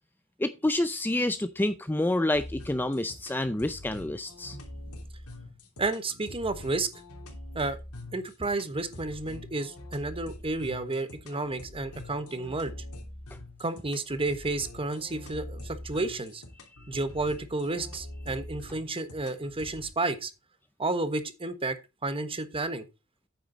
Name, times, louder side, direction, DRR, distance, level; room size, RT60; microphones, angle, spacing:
voice 1, 0.4-4.6, left 1 dB, 10° left, 0.5 m, -28 dB
sound 1, 2.3-19.9, left 1 dB, 85° left, 3.0 m, -44 dB
voice 2, 5.8-6.9 7.5-7.8 8.1-12.7 13.6-16.4 16.9-20.3 20.8-21.7 22.0-22.8, right 2 dB, 25° right, 1.2 m, -31 dB
9.2 x 8.4 x 3.9 m
head